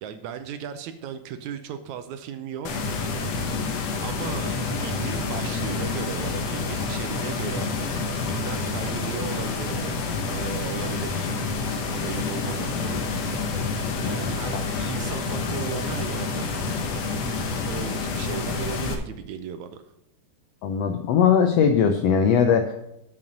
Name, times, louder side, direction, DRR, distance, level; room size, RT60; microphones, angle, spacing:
voice 1, 0.0-2.9 4.0-7.7 8.2-11.4 11.9-13.4 14.0-16.5 17.7-19.9, right 8 dB, 75° right, 9 dB, 1.8 m, -36 dB
sound 1, 2.6-18.9, left 4 dB, 65° left, 1.8 m, -28 dB
voice 2, 20.6-22.7, left 7 dB, 80° left, 6 dB, 1.4 m, -20 dB
7.6 x 6.0 x 6.3 m, 0.82 s
omnidirectional pair, 3.6 m